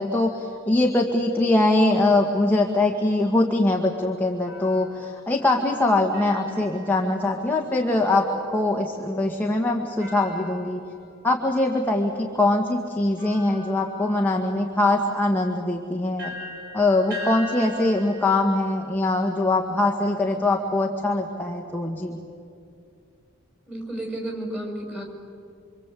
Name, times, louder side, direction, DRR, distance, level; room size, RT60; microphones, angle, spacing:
voice 1, 0.0-8.2 8.5-10.8 11.2-16.3 16.7-22.2, left 2 dB, 10° left, -1 dB, 1.8 m, -22 dB
sound 1, 4.4-7.9 10.0-11.5 12.2-12.3 13.2-20.1, left 1 dB, 55° right, 5.6 m, -42 dB
voice 2, 23.7-25.0, right 1 dB, 5° right, 1 dB, 6.0 m, -32 dB
27.0 x 25.5 x 8.5 m, 2.5 s
head